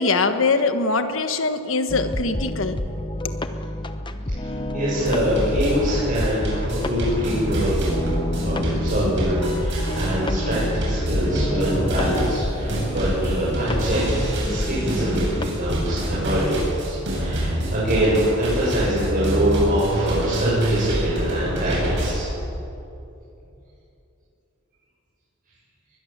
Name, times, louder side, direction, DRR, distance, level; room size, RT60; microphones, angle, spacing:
voice 1, 0.0-2.8 3.2-3.4, left 3 dB, 65° left, 8 dB, 1.5 m, -22 dB
sound 1, 1.9-15.4, left 1 dB, 25° left, 1.0 m, -29 dB
voice 2, 4.7-7.7 8.4-22.3, equal, 45° right, -9 dB, 7.4 m, -24 dB
sound 2, 5.0-22.1, right 1 dB, 60° right, 7.9 m, -26 dB
22.5 x 21.0 x 7.5 m, 2.8 s
head